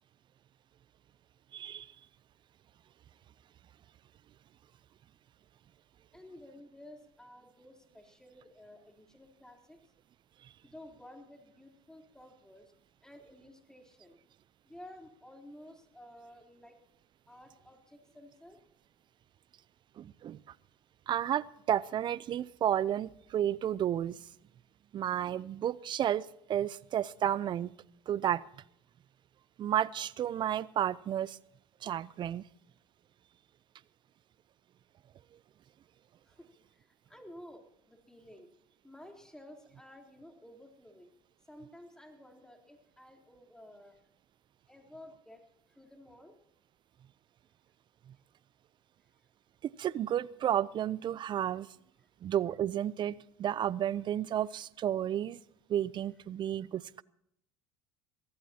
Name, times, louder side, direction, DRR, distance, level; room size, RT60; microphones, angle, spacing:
voice 1, 1.5-1.9 20.0-20.4 21.1-24.3 24.9-27.7 28.1-28.4 29.6-31.4 31.8-32.4 49.6-51.7 52.2-55.4 55.7-57.0, right 10 dB, 45° right, 21 dB, 0.6 m, -32 dB
voice 2, 6.1-9.8 10.6-12.7 13.0-14.2 14.7-16.7 17.3-18.6 36.2-38.5 38.8-41.1 41.5-44.0 44.7-45.4 45.7-46.4 49.0-49.1, left 1 dB, 5° left, 2 dB, 3.7 m, -53 dB
23.5 x 16.5 x 2.9 m, 0.76 s
hypercardioid pair, 80°, 11 cm